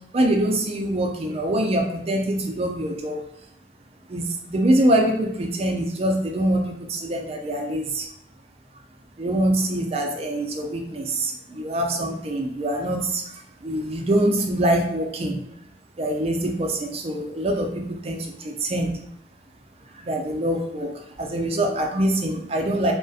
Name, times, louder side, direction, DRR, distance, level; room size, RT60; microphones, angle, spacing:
voice 1, 0.1-3.2 4.1-8.1 9.2-13.3 13.6-15.4 16.0-19.0 19.9-20.9 21.2-22.9, right 1 dB, 35° right, 2 dB, 0.4 m, -24 dB
2.3 x 2.1 x 2.6 m, 0.76 s
head